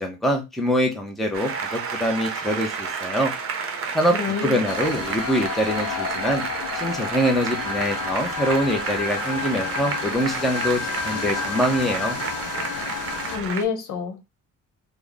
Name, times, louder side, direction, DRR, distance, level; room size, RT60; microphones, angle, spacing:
voice 1, 0.0-3.3 3.9-4.2 4.4-6.4 6.7-12.2, equal, ahead, 0.6 m, -24 dB
Applause, 1.3-13.6, right 5 dB, 45° right, 0.7 m, -31 dB
voice 2, 4.1-4.6 13.3-14.3, left 5 dB, 75° left, 1.0 m, -28 dB
sound 1, 4.7-13.4, left 6 dB, 50° left, 0.5 m, -31 dB
3.2 x 2.2 x 3.8 m
cardioid pair, 150°, 31 cm